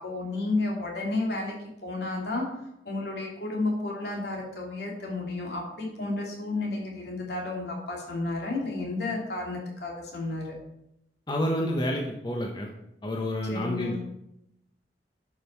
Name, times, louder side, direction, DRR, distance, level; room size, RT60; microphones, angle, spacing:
voice 1, 0.0-1.5 1.8-2.4 2.8-10.6 13.5-14.0, left 2 dB, 65° left, -1 dB, 2.7 m, -32 dB
voice 2, 11.3-12.7 13.0-14.0, equal, 25° left, 0 dB, 0.9 m, -29 dB
10.5 x 5.4 x 4.5 m, 0.83 s
head